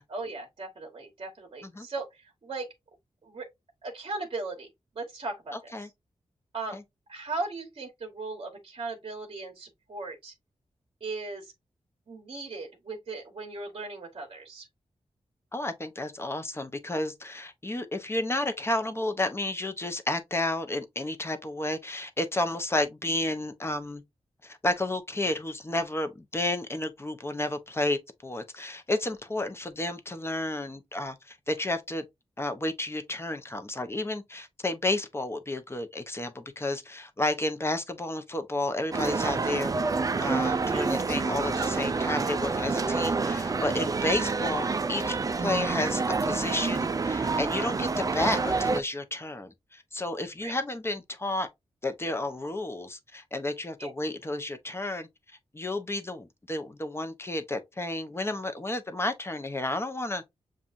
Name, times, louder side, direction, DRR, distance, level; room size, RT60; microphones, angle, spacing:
voice 1, 0.1-2.7 3.2-3.5 3.8-4.7 4.9-5.5 6.5-6.8 7.1-10.3 11.0-11.5 12.1-14.7 40.7-40.8 50.4-50.5 53.8-53.9, right 3 dB, 50° right, 1.2 m, -37 dB
voice 2, 5.5-5.9 6.7-6.8 15.5-24.0 24.4-32.0 32.4-39.7 40.2-51.5 51.8-55.1 55.5-60.2, left 2 dB, 20° left, 0.7 m, -31 dB
sound 1, 38.9-48.8, right 4 dB, 30° right, 0.3 m, -28 dB
7.1 x 2.4 x 2.5 m
wide cardioid pair, 95°, 11 cm